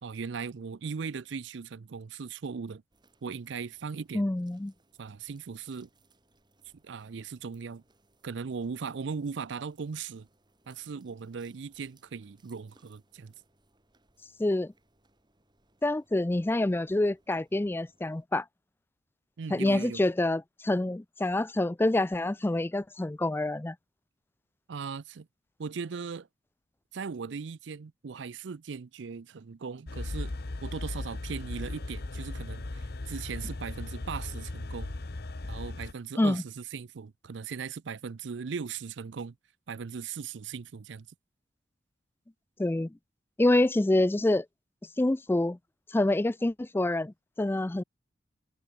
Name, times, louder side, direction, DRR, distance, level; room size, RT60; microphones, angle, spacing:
voice 1, 0.0-2.8 3.2-4.2 5.0-5.9 6.8-7.8 8.2-10.3 10.7-13.3 19.4-20.0 24.7-25.3 25.6-26.3 26.9-30.3 30.6-34.9 35.5-39.4 39.7-41.1, right 5 dB, 65° right, 0.5 m, -38 dB
sound 1, 2.9-18.3, right 2 dB, 25° right, 7.1 m, -68 dB
voice 2, 4.1-4.7 14.4-14.7 15.8-18.4 19.5-23.8 36.2-36.4 42.6-42.9 43.4-44.5 45.0-45.6 45.9-47.8, left 1 dB, 10° left, 0.4 m, -27 dB
sound 2, 29.9-35.9, left 2 dB, 55° left, 1.0 m, -37 dB
head